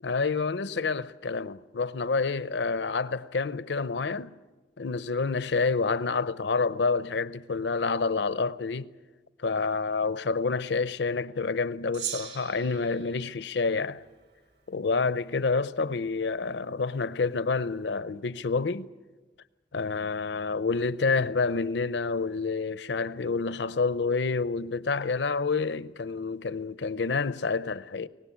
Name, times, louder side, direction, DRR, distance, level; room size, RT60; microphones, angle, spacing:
voice 1, 0.0-4.3 4.8-8.9 9.4-14.0 14.7-18.9 19.7-28.1, left 4 dB, 75° left, 0.6 m, -28 dB
Gong, 11.9-14.6, right 10 dB, 65° right, 2.1 m, -40 dB
23.5 x 19.0 x 8.5 m
head